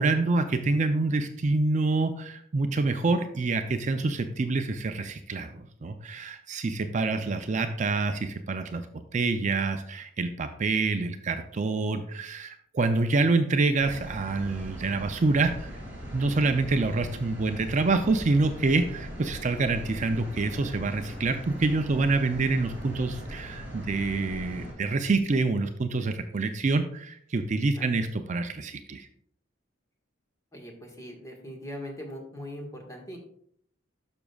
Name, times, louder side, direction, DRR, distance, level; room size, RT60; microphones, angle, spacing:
voice 1, 0.0-8.8 9.1-15.7 16.1-29.1, right 3 dB, 40° right, 7 dB, 0.4 m, -26 dB
sound 1, 13.8-24.7, equal, 10° right, 3.3 m, -40 dB
voice 2, 30.5-33.2, equal, 15° left, 0 dB, 1.6 m, -40 dB
12.0 x 6.1 x 2.4 m, 0.65 s
head